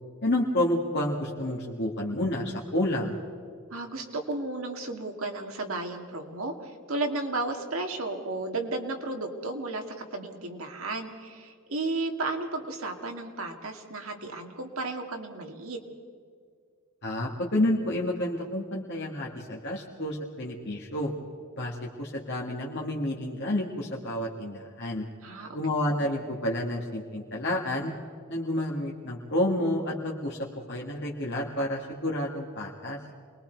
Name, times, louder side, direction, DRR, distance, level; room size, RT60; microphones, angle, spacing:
voice 1, 0.2-3.1 17.0-21.1 21.6-25.0 25.5-27.9 28.3-30.4 30.7-33.0, left 1 dB, 50° left, -2 dB, 1.9 m, -29 dB
voice 2, 3.7-9.8 10.1-15.8 25.2-25.6 26.0-26.1, right 2 dB, 65° right, 3 dB, 2.2 m, -33 dB
29.0 x 21.5 x 4.6 m, 2.1 s
head